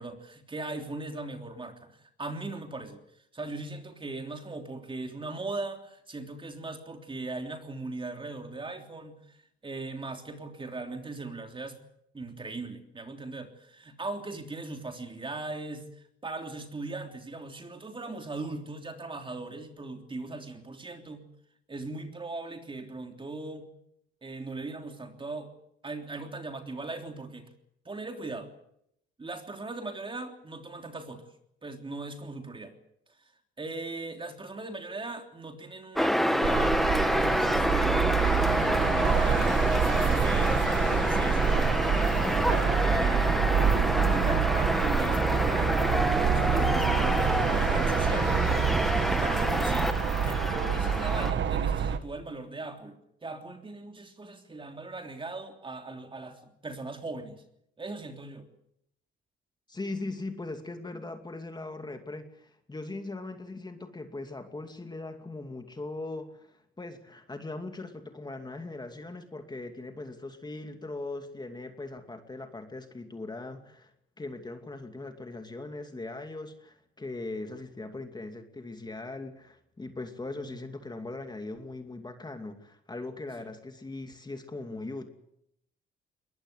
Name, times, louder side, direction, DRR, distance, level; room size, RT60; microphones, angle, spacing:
voice 1, 0.0-3.0 3.3-9.4 9.6-11.8 12.1-21.2 21.7-23.7 24.2-25.5 25.8-27.5 27.8-28.5 29.2-31.2 31.6-32.7 33.6-43.5 43.9-48.3 49.1-49.9 50.2-57.4 57.8-58.5 80.5-80.6 83.4-83.5, right 2 dB, 25° right, 5 dB, 3.4 m, -39 dB
sound 1, 36.0-51.3, equal, ahead, 1.6 m, -27 dB
sound 2, 36.4-52.0, right 8 dB, 70° right, 1.7 m, -27 dB
voice 2, 59.7-73.9 74.2-85.1, left 2 dB, 20° left, 6 dB, 2.5 m, -40 dB
22.0 x 20.0 x 8.1 m, 0.77 s
cardioid pair, 90°, 20 cm